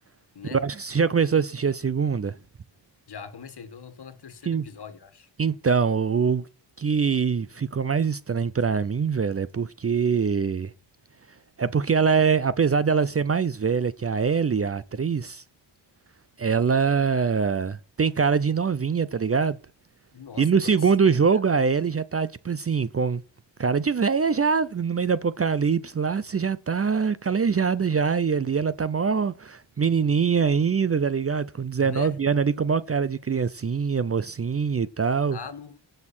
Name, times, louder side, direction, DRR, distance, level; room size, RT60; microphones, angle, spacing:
voice 1, 0.5-2.4 4.4-4.6 5.4-6.5 6.8-10.7 11.6-15.4 16.4-19.6 20.4-23.2 23.6-35.4, right 6 dB, 30° right, 0.6 m, -23 dB
voice 2, 3.1-5.3 20.1-21.1 31.8-32.2 35.3-35.8, left 6 dB, 55° left, 1.8 m, -41 dB
17.5 x 6.6 x 4.4 m
cardioid pair, 65°, 47 cm